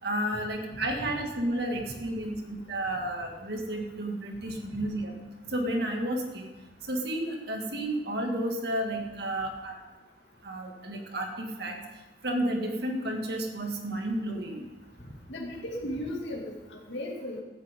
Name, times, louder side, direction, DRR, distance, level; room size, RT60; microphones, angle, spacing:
voice 1, 0.0-5.2 5.5-6.5 6.9-9.8 10.4-11.8 12.2-14.6, right 1 dB, 60° right, 2 dB, 2.1 m, -31 dB
voice 2, 15.3-17.4, left 1 dB, 75° left, -3 dB, 2.4 m, -36 dB
16.0 x 13.0 x 3.7 m, 1.1 s
head